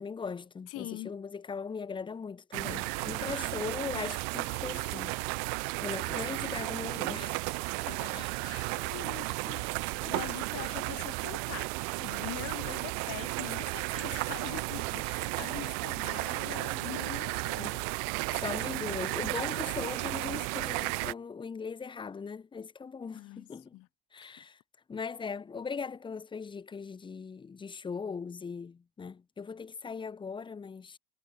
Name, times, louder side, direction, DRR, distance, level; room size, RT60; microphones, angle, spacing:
voice 1, 0.0-5.4 5.8-7.4 7.9-8.3 17.6-17.8 18.3-23.8 24.1-24.6 24.9-31.0, left 5 dB, 15° left, 0.8 m, -39 dB
voice 2, 0.7-1.1 2.9-3.3 7.8-18.0 23.1-23.9 24.2-24.4, left 19 dB, 55° left, 1.6 m, -44 dB
sound 1, 2.5-21.1, right 40 dB or more, 65° right, 0.6 m, -34 dB
hypercardioid pair, 95°, 29 cm